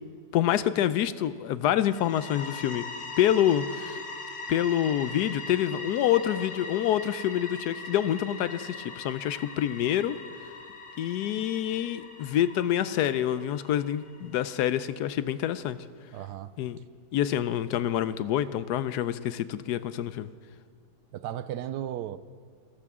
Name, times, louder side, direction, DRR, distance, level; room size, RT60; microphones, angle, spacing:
voice 1, 0.3-2.8 3.2-4.0 4.5-10.2 11.0-15.8 16.6-16.8 17.1-20.3, left 11 dB, 75° left, 1.1 m, -27 dB
sound 1, 1.8-14.5, left 3 dB, 45° left, 1.5 m, -41 dB
voice 2, 16.1-16.5 21.1-22.2, right 11 dB, 75° right, 1.1 m, -35 dB
27.0 x 14.5 x 3.6 m
omnidirectional pair, 1.8 m